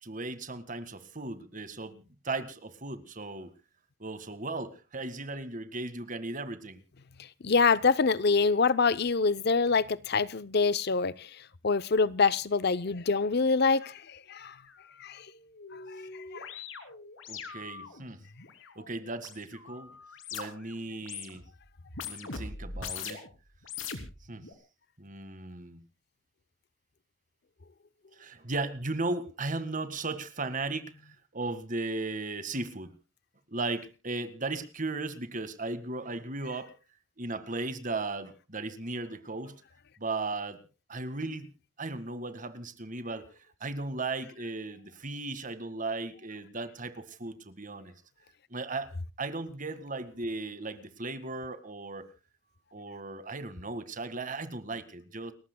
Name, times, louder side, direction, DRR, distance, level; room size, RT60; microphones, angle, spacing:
voice 1, 0.0-3.5 4.0-6.8 17.3-18.2 18.8-20.0 20.3-21.4 22.1-23.2 24.3-24.4 25.0-25.8 28.2-32.9 33.5-36.7 37.2-39.6 40.0-40.6 40.9-43.3 43.6-47.9 48.5-48.9 49.2-52.1 52.7-55.3, right 3 dB, 40° right, 1.9 m, -36 dB
voice 2, 7.4-11.3 11.6-14.5 15.0-15.3 16.3-16.5, left 4 dB, 55° left, 0.7 m, -25 dB
sound 1, 14.7-14.8 15.1-20.7 21.0-21.5 21.9-23.3 23.6-24.5, left 5 dB, 80° left, 3.0 m, -42 dB
30.0 x 14.5 x 2.3 m
head